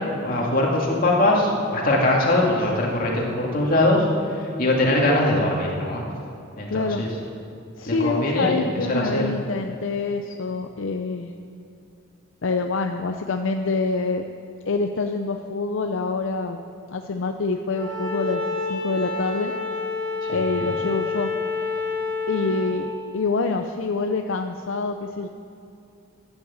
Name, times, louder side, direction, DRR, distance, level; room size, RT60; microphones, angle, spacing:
voice 1, 0.2-6.0 6.6-7.1 7.9-9.3 20.3-20.7, left 1 dB, 45° left, -2 dB, 2.5 m, -22 dB
voice 2, 6.7-7.0 7.8-11.3 12.4-14.2 14.7-16.6 16.9-18.4 18.7-19.5 20.3-21.3 22.3-25.3, left 3 dB, 70° left, 5 dB, 0.6 m, -26 dB
Bowed string instrument, 17.7-22.8, left 4 dB, 25° left, 4.2 m, -28 dB
13.5 x 9.9 x 7.3 m, 2.6 s
head